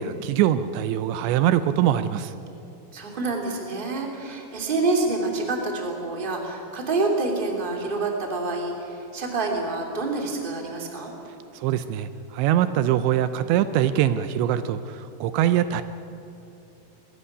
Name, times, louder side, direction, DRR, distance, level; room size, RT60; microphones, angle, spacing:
voice 1, 0.0-2.3 11.5-15.8, right 11 dB, 80° right, 12 dB, 2.9 m, -23 dB
voice 2, 2.9-11.1, right 3 dB, 15° right, 1 dB, 2.1 m, -27 dB
21.0 x 15.0 x 10.0 m, 2.9 s
omnidirectional pair, 5.2 m